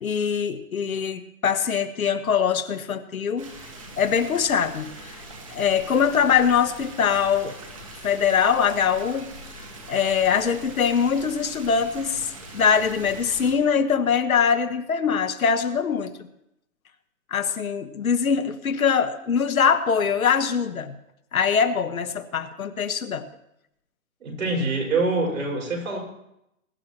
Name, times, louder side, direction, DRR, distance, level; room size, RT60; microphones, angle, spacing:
voice 1, 0.0-3.5 4.0-5.2 5.5-7.6 8.0-9.3 9.9-16.1 17.3-20.9 21.3-23.3, left 7 dB, 75° left, 8 dB, 1.4 m, -23 dB
sound 1, 3.4-13.6, right 1 dB, 25° right, 1.4 m, -42 dB
voice 2, 24.2-26.0, right 3 dB, 70° right, 0 dB, 5.6 m, -25 dB
21.5 x 11.5 x 3.0 m, 0.82 s
hypercardioid pair, 180°, 43 cm